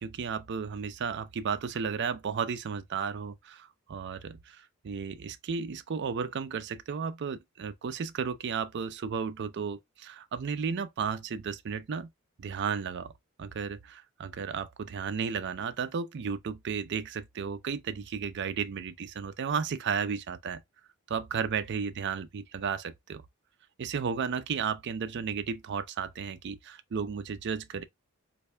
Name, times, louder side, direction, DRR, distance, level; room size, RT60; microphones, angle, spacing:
voice 1, 0.0-12.1 12.4-13.1 13.4-20.6 21.1-23.2 23.8-27.8, right 6 dB, 55° right, 0.4 m, -34 dB
3.2 x 2.6 x 3.2 m
head